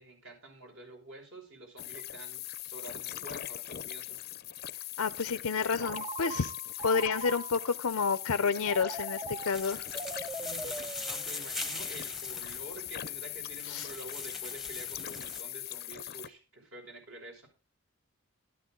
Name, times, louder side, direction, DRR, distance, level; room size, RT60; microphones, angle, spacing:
voice 1, 0.0-4.2 10.4-17.5, right 1 dB, 60° right, 2 dB, 5.8 m, -48 dB
sound 1, 1.8-16.3, left 13 dB, 45° left, 0.6 m, -41 dB
voice 2, 5.0-6.5 6.8-9.8 13.7-13.9, left 5 dB, 85° left, 12 dB, 0.6 m, -30 dB
Telephone, 5.8-7.8 8.6-11.7, right 3 dB, 20° right, 0.6 m, -41 dB
sound 2, 9.5-15.4, left 2 dB, ahead, 1.0 m, -41 dB
13.5 x 12.5 x 3.8 m, 0.31 s
head